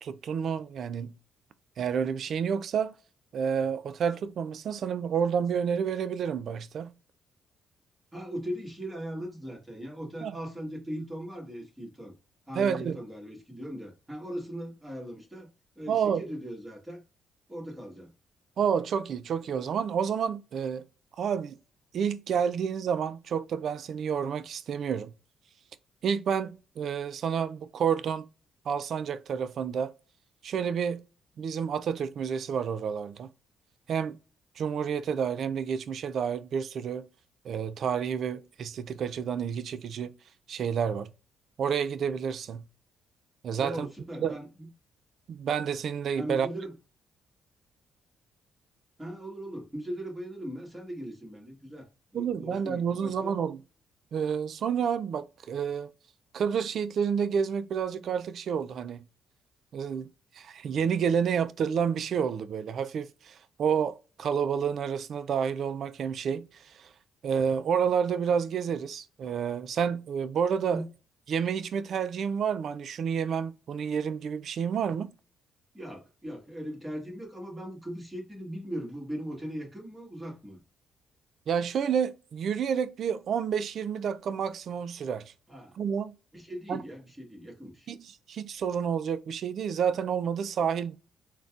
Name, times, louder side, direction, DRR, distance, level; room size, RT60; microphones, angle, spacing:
voice 1, 0.0-1.2 1.8-2.9 3.3-6.9 10.2-10.4 12.5-13.0 15.9-16.2 18.6-20.9 21.2-21.6 21.9-25.1 26.0-28.3 28.7-29.9 30.4-31.0 31.4-33.3 33.9-34.2 34.6-37.1 37.4-40.1 40.5-41.1 41.6-42.6 43.4-43.9 44.2-44.4 45.3-46.5 52.1-53.6 54.1-55.9 56.3-59.0 59.7-60.1 60.3-66.9 67.2-70.8 71.3-75.1 81.5-85.3 85.8-86.1 86.7-86.8 87.9-91.0, right 7 dB, 65° right, 0.3 m, -29 dB
voice 2, 8.1-12.1 12.5-15.5 15.7-17.0 17.5-18.1 43.6-44.7 46.2-46.7 49.0-53.4 70.7-70.9 75.7-80.6 85.5-85.8 86.3-87.9, equal, 15° right, 1.5 m, -39 dB
3.9 x 2.2 x 2.4 m
cardioid pair, 90°, 0 cm